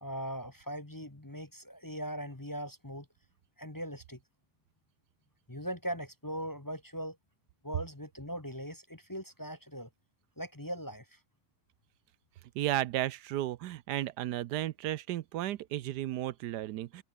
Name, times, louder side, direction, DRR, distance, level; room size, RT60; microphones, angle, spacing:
voice 1, 0.0-3.1 3.6-4.2 5.5-7.2 7.6-9.9 10.4-11.2, equal, 15° left, 1.3 m, -40 dB
voice 2, 12.5-17.0, right 13 dB, 80° right, 1.2 m, -34 dB
open air
omnidirectional pair, 1.8 m